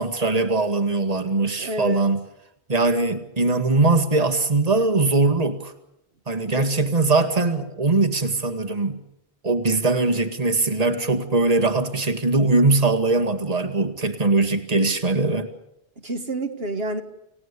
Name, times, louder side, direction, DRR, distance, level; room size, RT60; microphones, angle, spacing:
voice 1, 0.0-2.2 2.7-5.7 6.3-9.0 9.4-15.5, right 3 dB, 35° right, 7 dB, 2.1 m, -21 dB
voice 2, 1.6-2.1 6.6-6.7 16.0-17.0, right 1 dB, 70° right, 5 dB, 2.0 m, -29 dB
29.5 x 17.5 x 8.4 m, 0.83 s
omnidirectional pair, 1.1 m